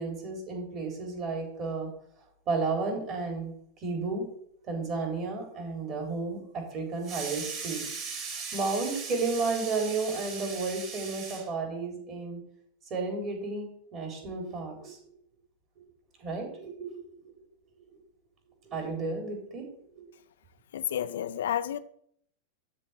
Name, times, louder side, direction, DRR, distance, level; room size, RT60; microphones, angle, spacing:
voice 1, 0.0-1.9 2.5-4.2 4.6-12.4 12.9-15.0 16.2-17.3 18.6-19.6 19.9-20.0, right 4 dB, 35° right, 3.9 m, -32 dB
voice 2, 20.7-21.8, left 10 dB, 60° left, 0.5 m, -30 dB
12.5 x 4.5 x 8.3 m
figure-of-eight pair, 90°, 0 cm